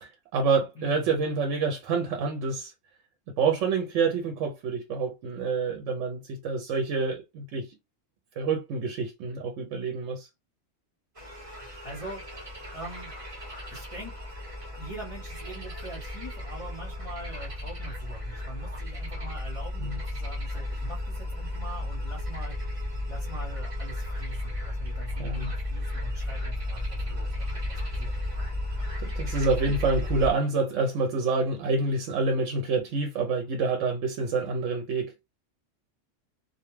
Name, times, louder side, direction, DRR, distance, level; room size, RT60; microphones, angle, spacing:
voice 1, 0.0-2.7 3.4-7.7 8.4-10.3 19.8-20.0 25.2-25.5 29.0-35.1, right 4 dB, 80° right, 0.9 m, -27 dB
voice 2, 0.7-1.1 11.6-12.2 12.7-13.1 13.7-14.2 14.8-22.6 23.1-28.1, right 1 dB, 30° left, 0.9 m, -43 dB
sound 1, 11.1-30.3, left 1 dB, 30° right, 0.9 m, -34 dB
2.2 x 2.2 x 3.1 m
omnidirectional pair, 1.3 m